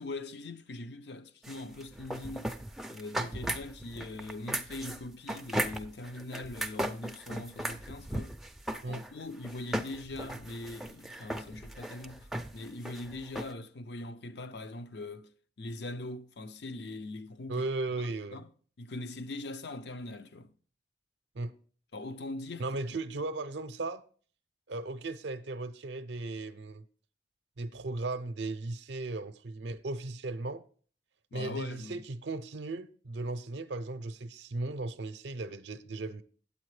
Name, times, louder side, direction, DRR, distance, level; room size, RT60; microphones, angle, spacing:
voice 1, 0.0-2.5 2.9-8.3 8.8-15.3 15.6-17.7 18.3-18.5 18.8-20.5 21.9-22.7 31.3-32.0, left 2 dB, 70° left, 0.6 m, -41 dB
sound 1, 1.4-13.5, right 1 dB, ahead, 0.4 m, -37 dB
voice 2, 17.5-18.4 21.3-21.5 22.6-24.0 24.7-26.8 27.6-30.6 31.3-36.2, right 2 dB, 75° right, 0.5 m, -36 dB
9.1 x 8.3 x 3.2 m
head